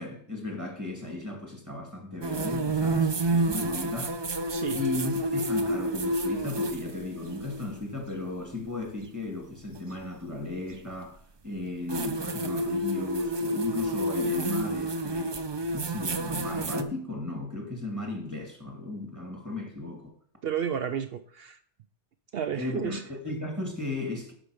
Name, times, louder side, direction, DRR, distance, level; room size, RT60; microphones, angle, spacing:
voice 1, 0.0-4.2 4.7-11.2 11.4-15.4 15.7-20.1 22.5-24.3, left 2 dB, 15° right, 2.2 m, -35 dB
sound 1, 2.2-7.7 9.8-9.9 11.9-16.8, right 1 dB, 30° right, 0.5 m, -29 dB
voice 2, 4.5-4.8 20.4-21.6 22.3-23.0, right 8 dB, 65° right, 0.8 m, -32 dB
11.5 x 5.3 x 4.9 m
omnidirectional pair, 1.2 m